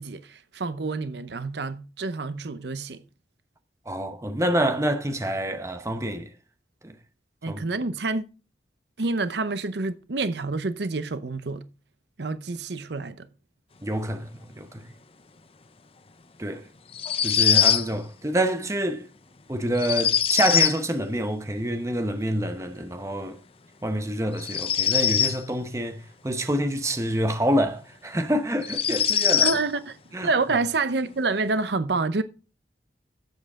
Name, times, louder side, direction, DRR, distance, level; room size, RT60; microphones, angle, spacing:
voice 1, 0.0-3.0 7.4-8.2 9.0-11.7 12.2-13.3 29.4-32.2, right 3 dB, 70° right, 0.8 m, -28 dB
voice 2, 3.9-6.3 6.8-6.9 7.5-7.6 13.8-14.9 16.4-16.7 17.2-19.1 19.5-23.4 23.8-29.5 30.1-30.3, right 1 dB, 15° right, 0.9 m, -27 dB
sound 1, 16.9-17.9 19.8-20.8 24.4-25.4 27.6-27.7 28.6-29.6, left 8 dB, 30° left, 0.6 m, -22 dB
11.5 x 7.9 x 3.6 m
head